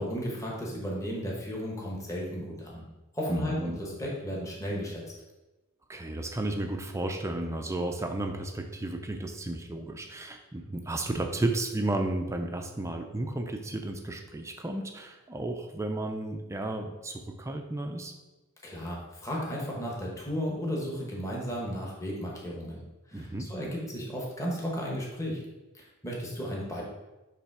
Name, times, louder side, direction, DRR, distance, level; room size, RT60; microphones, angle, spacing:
voice 1, 0.0-2.9 3.1-5.0 18.6-22.8 23.1-25.4 25.7-26.8, equal, 15° left, -3 dB, 1.2 m, -34 dB
voice 2, 3.3-3.8 5.9-18.1 23.1-23.5, right 2 dB, 15° right, 4 dB, 0.4 m, -33 dB
7.0 x 3.3 x 4.8 m, 1.1 s
head